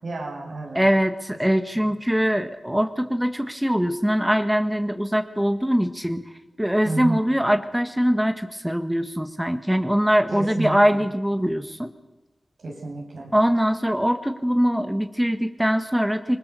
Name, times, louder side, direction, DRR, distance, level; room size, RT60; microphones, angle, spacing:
voice 1, 0.0-0.8 1.7-1.9 6.8-7.2 10.4-11.0 12.6-13.3, right 2 dB, 85° right, 0 dB, 6.6 m, -31 dB
voice 2, 0.7-6.3 6.6-11.9 13.3-16.4, equal, 5° right, 7 dB, 1.8 m, -22 dB
26.0 x 21.5 x 6.9 m, 1.1 s
cardioid pair, 50°, 0 cm